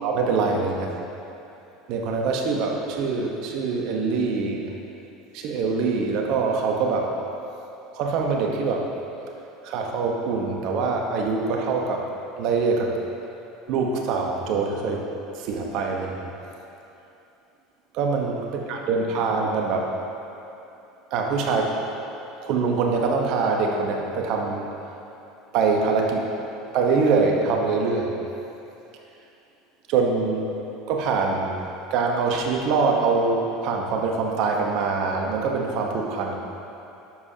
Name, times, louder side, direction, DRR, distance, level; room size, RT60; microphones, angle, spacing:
voice 1, 0.0-1.0 1.9-4.7 5.3-7.1 7.9-8.9 9.6-12.1 12.4-13.0 13.7-15.0 15.3-16.3 17.9-19.9 21.1-21.7 22.4-24.7 25.5-26.2 26.7-28.1 29.9-30.5 30.9-31.6 31.9-36.4, right 4 dB, 60° right, 1 dB, 1.0 m, -24 dB
11.0 x 7.3 x 2.8 m, 2.8 s
hypercardioid pair, 80°, 0 cm